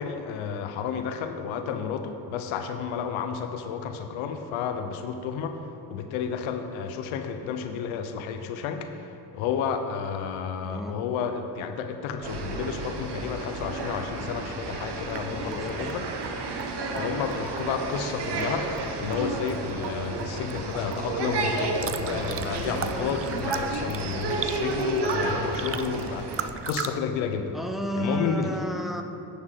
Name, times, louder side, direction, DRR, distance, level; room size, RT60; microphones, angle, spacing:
voice 1, 0.0-5.6 5.9-16.1 16.9-18.7 19.0-27.6 27.9-28.5, left 7 dB, 80° left, 7 dB, 0.8 m, -31 dB
voice 2, 10.6-11.0 15.5-15.7 27.5-29.0, equal, ahead, 4 dB, 0.9 m, -31 dB
sound 1, 12.2-26.5, right 3 dB, 55° right, 1.1 m, -31 dB
Raindrop / Drip, 15.1-22.5, right 9 dB, 90° right, 0.6 m, -44 dB
sound 2, 21.6-26.9, right 8 dB, 30° right, 0.4 m, -37 dB
9.6 x 7.1 x 3.8 m, 2.8 s
hypercardioid pair, 45°, 47 cm